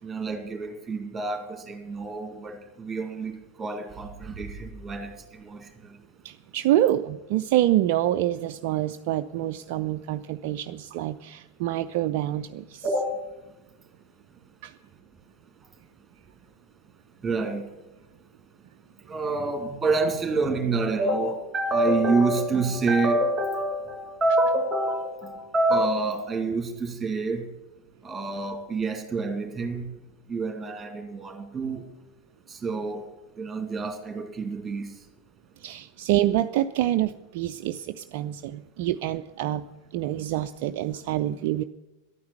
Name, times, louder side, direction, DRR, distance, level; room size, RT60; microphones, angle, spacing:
voice 1, 0.0-6.0 12.8-13.2 17.2-17.6 19.1-27.5 28.0-29.9 30.3-31.8 32.5-33.1 33.4-35.0, right 2 dB, 15° right, 5 dB, 2.5 m, -27 dB
voice 2, 6.2-12.8 14.6-14.7 35.6-39.6 39.9-41.6, right 13 dB, 45° right, 9 dB, 0.4 m, -26 dB
12.0 x 9.4 x 8.2 m, 1.1 s
figure-of-eight pair, 90°, 0 cm